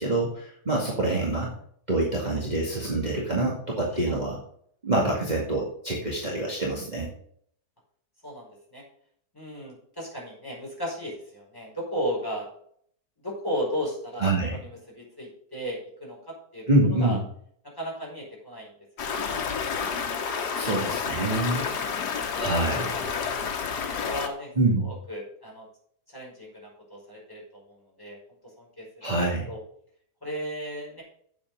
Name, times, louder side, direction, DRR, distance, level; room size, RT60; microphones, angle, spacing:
voice 1, 0.0-1.5 1.9-4.4 4.8-7.1 14.2-14.6 16.7-17.2 20.5-21.7 22.4-23.0 24.6-24.9 29.0-29.5, right 2 dB, 25° right, -4 dB, 2.3 m, -26 dB
voice 2, 8.2-8.8 9.3-12.5 13.2-16.7 17.0-17.2 17.8-18.7 19.0-19.4 21.8-22.1 23.0-23.5 23.9-24.5 24.8-25.7 26.1-28.2 28.6-29.1 29.5-29.6 30.2-31.0, equal, 15° left, -4 dB, 5.0 m, -35 dB
Stream, 19.0-24.3, left 6 dB, 85° left, 1.7 m, -30 dB
8.9 x 7.8 x 5.4 m, 0.63 s
omnidirectional pair, 1.7 m